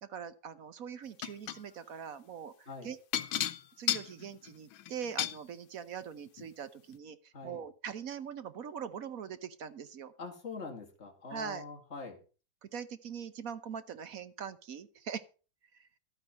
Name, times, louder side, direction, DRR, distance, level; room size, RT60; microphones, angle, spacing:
voice 1, 0.0-3.0 3.4-3.5 3.8-10.1 11.3-11.6 12.6-15.2 15.8-15.9, right 7 dB, 55° right, 12 dB, 1.1 m, -42 dB
sound 1, 1.2-1.6 3.1-5.4 6.4-6.5 6.9-7.0, left 12 dB, 90° left, 1.7 m, -33 dB
voice 2, 10.2-12.2, left 4 dB, 35° left, 2 dB, 2.8 m, -44 dB
12.5 x 9.2 x 5.3 m, 0.36 s
omnidirectional pair, 2.1 m